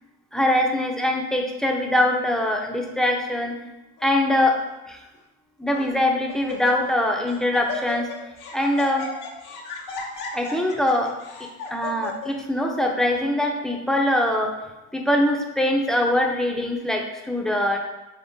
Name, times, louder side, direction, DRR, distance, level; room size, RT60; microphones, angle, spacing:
voice 1, 0.3-3.5 4.0-4.6 4.9-5.0 5.6-8.1 8.5-9.1 10.3-11.1 11.7-14.5 14.9-17.8, left 1 dB, ahead, 1 dB, 0.6 m, -22 dB
Laughter, 4.0-4.4 5.1-5.2 5.7-6.0 6.3-7.0 7.3-12.3, left 5 dB, 85° left, 0.9 m, -35 dB
4.1 x 3.6 x 2.7 m, 1.0 s
cardioid pair, 90°, 30 cm